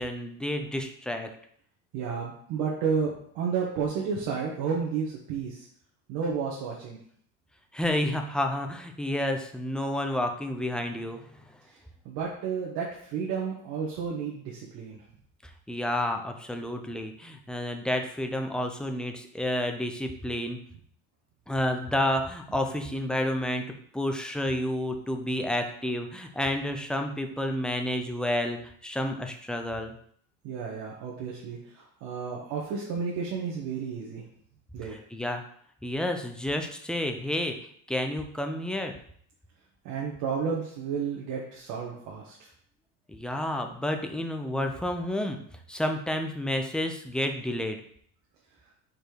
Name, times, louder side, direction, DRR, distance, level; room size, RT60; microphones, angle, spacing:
voice 1, 0.0-1.3 7.7-11.2 15.7-20.6 21.5-23.6 23.9-29.9 35.1-35.4 35.8-38.9 43.1-45.4 45.7-47.8, left 1 dB, ahead, 4 dB, 0.5 m, -30 dB
voice 2, 1.9-3.1 3.3-5.7 6.1-7.0 12.0-15.0 30.4-34.2 34.7-35.0 39.8-42.5, right 6 dB, 65° right, -4 dB, 1.5 m, -31 dB
5.2 x 4.5 x 4.5 m, 0.63 s
cardioid pair, 140°, 36 cm